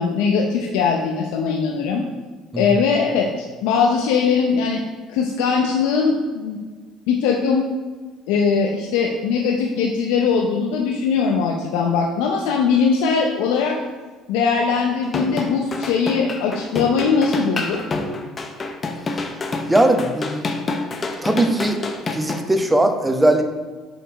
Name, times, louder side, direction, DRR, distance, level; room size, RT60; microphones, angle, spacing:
voice 1, 0.0-2.0 2.6-4.8 5.1-6.6 7.1-7.7 8.3-13.8 14.3-17.8, left 5 dB, 75° left, 1 dB, 0.6 m, -20 dB
sound 1, 15.0-22.4, left 3 dB, 35° left, 0.8 m, -27 dB
voice 2, 19.7-20.4 21.2-21.8 22.1-23.4, right 1 dB, 15° right, 5 dB, 0.8 m, -19 dB
5.2 x 4.4 x 5.0 m, 1.4 s
hypercardioid pair, 65°, 0 cm